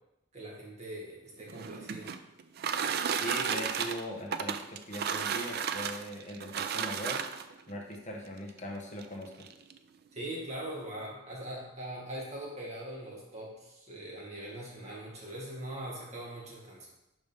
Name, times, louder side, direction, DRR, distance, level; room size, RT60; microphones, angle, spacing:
voice 1, 0.3-2.1 10.1-16.9, right 1 dB, 30° right, -4 dB, 1.9 m, -41 dB
sound 1, 1.4-7.6 8.5-8.6 9.0-9.1 9.4-9.8, right 7 dB, 50° right, 0.4 m, -33 dB
voice 2, 3.2-7.2 7.7-9.5, equal, 35° left, 0 dB, 1.2 m, -40 dB
5.2 x 4.9 x 5.4 m, 0.91 s
head